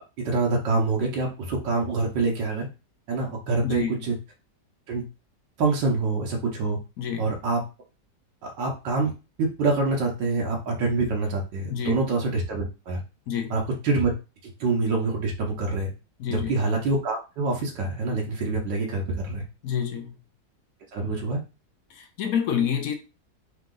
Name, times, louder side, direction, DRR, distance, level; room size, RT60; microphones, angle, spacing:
voice 1, 0.2-2.7 3.1-4.1 4.9-5.0 5.6-6.8 7.2-7.6 8.4-9.1 9.4-13.0 13.5-14.1 14.4-15.9 16.3-19.4 20.9-21.4, right 3 dB, 80° right, 1.6 m, -26 dB
voice 2, 3.6-4.1 7.0-7.4 11.7-12.0 13.3-13.5 16.2-16.6 19.6-20.2 21.9-22.9, left 8 dB, 65° left, 1.0 m, -28 dB
3.8 x 2.9 x 3.7 m
omnidirectional pair, 1.9 m